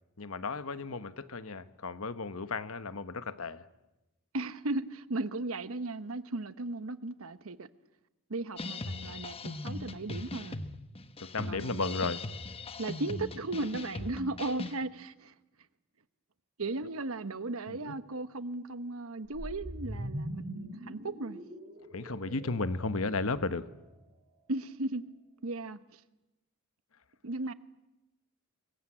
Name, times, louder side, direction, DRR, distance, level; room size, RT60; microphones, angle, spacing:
voice 1, 0.2-3.7 11.2-12.3 17.7-17.9 21.9-23.7, left 3 dB, 75° left, 1.2 m, -34 dB
voice 2, 4.3-7.7 8.3-10.6 11.4-11.9 12.8-15.3 16.6-21.4 24.5-25.0 25.4-26.0 27.2-27.5, right 2 dB, 75° right, 1.1 m, -36 dB
sound 1, 8.6-14.8, left 2 dB, 25° left, 1.0 m, -40 dB
sound 2, 19.3-23.6, equal, 45° right, 7.4 m, -42 dB
25.0 x 22.0 x 8.7 m
head